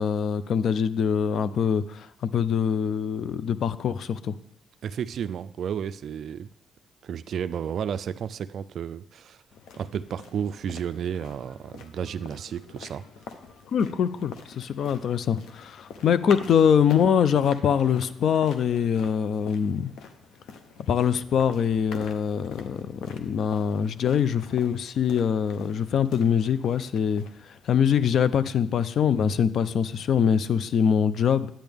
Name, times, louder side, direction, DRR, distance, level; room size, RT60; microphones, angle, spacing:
voice 1, 0.0-4.3 13.7-19.9 20.9-31.5, left 7 dB, 65° left, 15 dB, 0.5 m, -24 dB
voice 2, 4.8-6.5 7.0-9.4 9.8-13.0, right 8 dB, 65° right, 13 dB, 0.3 m, -32 dB
sound 1, 9.5-28.1, left 5 dB, 80° left, 0.9 m, -45 dB
10.5 x 8.8 x 3.5 m, 0.71 s
cardioid pair, 90°, 0 cm